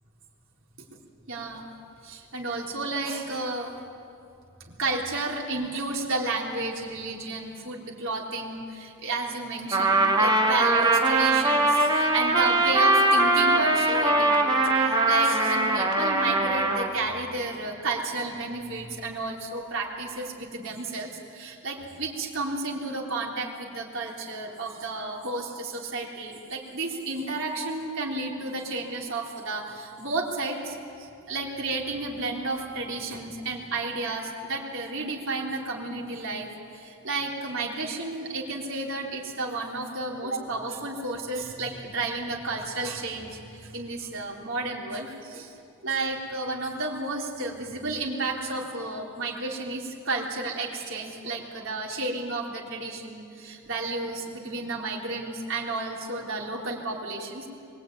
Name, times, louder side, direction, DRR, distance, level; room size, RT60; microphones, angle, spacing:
voice 1, 1.3-1.7 2.0-3.7 4.6-45.5 45.8-57.5, right 2 dB, 65° right, -2 dB, 4.0 m, -32 dB
Trumpet, 9.7-16.9, right 2 dB, 20° right, 2.1 m, -21 dB
23.0 x 19.5 x 9.4 m, 2.5 s
head